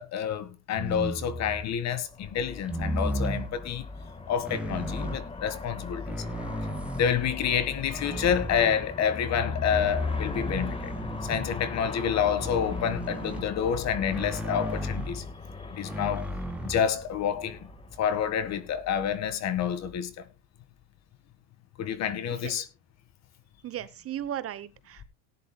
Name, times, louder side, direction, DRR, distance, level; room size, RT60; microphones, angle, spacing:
voice 1, 0.0-3.9 4.3-6.1 7.0-10.9 11.2-15.2 15.7-16.3 16.6-17.7 18.0-20.2 21.8-22.7, left 8 dB, 45° left, 1.7 m, -28 dB
sound 1, 0.7-1.7 2.6-3.6 4.5-5.2 5.9-7.3 8.0-9.1 9.7-11.6 12.4-13.5 14.1-15.2 15.8-16.8, right 1 dB, 5° right, 1.6 m, -34 dB
Aircraft, 2.0-19.3, left 4 dB, 15° left, 1.5 m, -39 dB
voice 2, 23.6-25.0, right 11 dB, 35° right, 0.9 m, -36 dB
18.5 x 10.5 x 2.2 m
cardioid pair, 140°, 39 cm